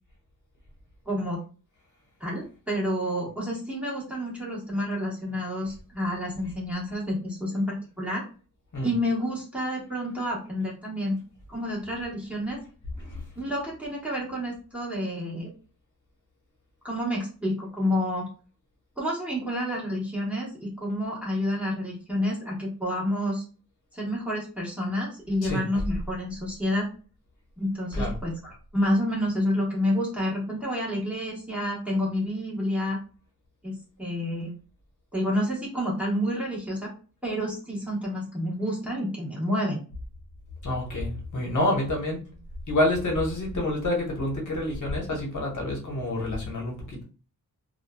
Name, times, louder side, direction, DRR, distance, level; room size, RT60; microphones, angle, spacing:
voice 1, 1.1-1.4 2.2-8.2 8.8-11.2 11.5-12.6 13.4-15.5 16.8-18.3 19.0-23.4 23.9-26.9 27.6-33.0 33.6-34.5 35.1-36.9 37.2-39.8, equal, 5° right, -6 dB, 1.1 m, -29 dB
voice 2, 40.6-42.2 42.7-47.0, left 1 dB, 55° left, -1 dB, 1.0 m, -28 dB
3.0 x 2.3 x 2.2 m, 0.37 s
wide cardioid pair, 115°, 35 cm